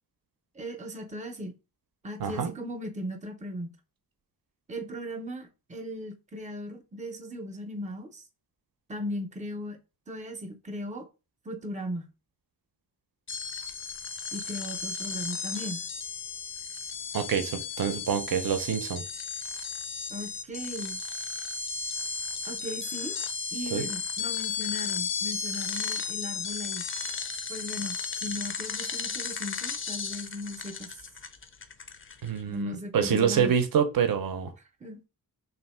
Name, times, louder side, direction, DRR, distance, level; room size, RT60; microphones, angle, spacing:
voice 1, 0.6-1.5 2.0-3.7 4.7-8.2 8.9-9.8 10.1-11.1 11.5-12.1 14.3-15.8 20.1-21.0 22.5-23.2 23.5-26.8 27.5-30.9 32.5-33.5 34.8-35.0, equal, 20° right, 0.6 m, -37 dB
voice 2, 2.2-2.5 17.1-19.0 23.7-23.9 32.2-34.5, right 7 dB, 60° right, 0.6 m, -26 dB
sound 1, 13.3-32.4, left 5 dB, 35° left, 0.4 m, -34 dB
3.4 x 2.6 x 4.2 m
wide cardioid pair, 175°, 39 cm